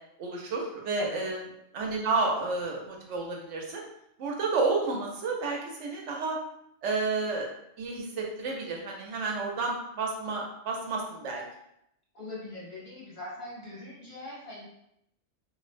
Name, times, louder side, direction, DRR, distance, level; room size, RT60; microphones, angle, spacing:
voice 1, 0.2-1.4 1.7-3.8 4.2-6.4 6.8-7.5 7.8-11.4, right 3 dB, 75° right, 0 dB, 0.9 m, -31 dB
voice 2, 12.1-14.6, left 2 dB, 50° left, -7 dB, 0.7 m, -41 dB
2.5 x 2.0 x 2.4 m, 0.78 s
omnidirectional pair, 1.2 m